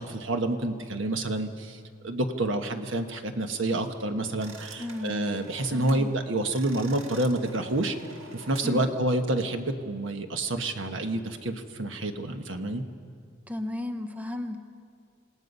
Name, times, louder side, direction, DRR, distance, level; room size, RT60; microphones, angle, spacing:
voice 1, 0.0-8.0 8.3-12.8, right 2 dB, 65° right, 6 dB, 1.3 m, -28 dB
sound 1, 4.4-6.1 6.4-8.7, right 3 dB, 90° right, 1.7 m, -47 dB
voice 2, 4.8-5.2 5.7-6.2 8.6-8.9 13.5-14.7, left 1 dB, 10° right, 7 dB, 0.8 m, -34 dB
27.0 x 18.0 x 5.5 m, 2.2 s
head